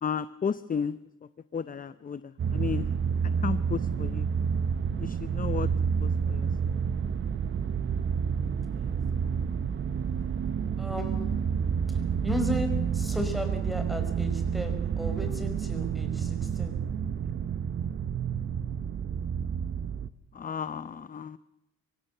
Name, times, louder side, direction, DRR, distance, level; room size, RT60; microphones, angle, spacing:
voice 1, 0.0-1.0 1.5-2.2 2.5-2.9 3.4-4.3 5.0-5.7 6.0-6.5 20.3-21.4, left 6 dB, 30° left, 15 dB, 0.7 m, -33 dB
sound 1, 2.4-20.1, right 7 dB, 40° right, 0.8 m, -29 dB
voice 2, 8.6-9.0 9.5-9.6 10.8-11.4 11.9-16.8, equal, ahead, 6 dB, 5.3 m, -35 dB
25.5 x 16.5 x 6.7 m, 0.91 s
cardioid pair, 90°, 30 cm